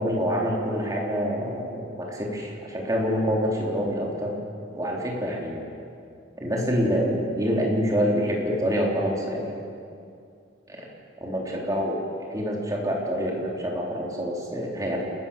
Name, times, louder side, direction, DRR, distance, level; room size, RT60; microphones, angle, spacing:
voice 1, 0.0-4.4 4.7-5.6 6.4-9.6 10.7-10.8 11.2-12.0 12.3-15.0, equal, 20° right, -2 dB, 3.6 m, -26 dB
30.0 x 14.0 x 7.1 m, 2.4 s
head